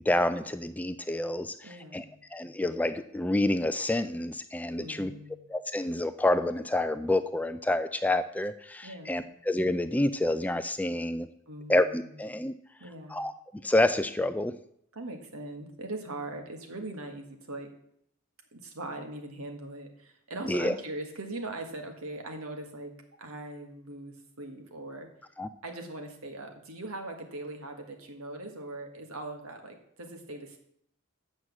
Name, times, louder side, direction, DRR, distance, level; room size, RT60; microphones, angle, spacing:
voice 1, 0.1-2.0 2.3-5.1 5.5-11.3 11.7-12.5 13.1-13.3 13.6-14.5 20.5-20.7 25.4-25.5, left 1 dB, 5° left, 11 dB, 0.3 m, -28 dB
voice 2, 1.6-2.3 4.8-5.4 8.8-9.3 11.5-12.2 12.8-13.3 14.9-17.7 18.5-25.1 25.6-30.6, right 2 dB, 85° right, 4 dB, 1.7 m, -41 dB
8.2 x 6.3 x 7.3 m, 0.70 s
head